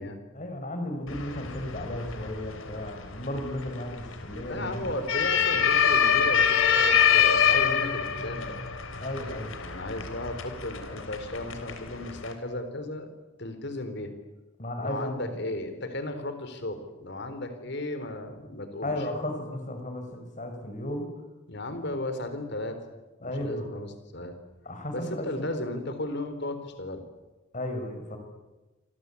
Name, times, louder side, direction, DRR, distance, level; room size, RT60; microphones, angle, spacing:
voice 1, 0.3-4.9 9.0-9.5 14.6-15.3 18.8-21.1 23.2-23.7 24.7-25.5 27.5-28.2, left 1 dB, 35° left, 5 dB, 5.8 m, -34 dB
sound 1, 1.1-12.3, left 7 dB, 80° left, 3.9 m, -26 dB
voice 2, 4.5-8.6 9.6-13.1 13.4-14.1 14.8-18.9 21.5-22.8 23.2-24.4 24.9-27.0, left 1 dB, 55° left, 9 dB, 4.1 m, -35 dB
27.5 x 25.0 x 8.6 m, 1.1 s
head